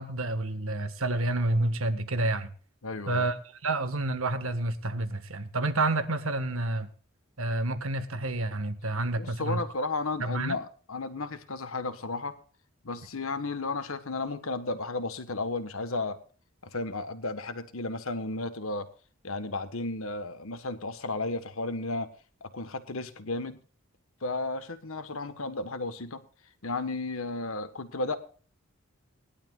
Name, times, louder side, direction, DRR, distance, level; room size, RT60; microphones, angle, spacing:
voice 1, 0.0-2.5 3.1-3.4 3.6-6.9 7.4-9.6 10.2-10.5, right 2 dB, 75° right, 9 dB, 1.6 m, -29 dB
voice 2, 2.8-3.3 9.2-12.4 12.8-16.2 16.7-18.9 19.2-22.1 22.4-23.6 24.2-26.2 26.6-28.2, left 3 dB, 75° left, 10 dB, 1.4 m, -33 dB
21.0 x 11.5 x 2.5 m, 0.39 s
head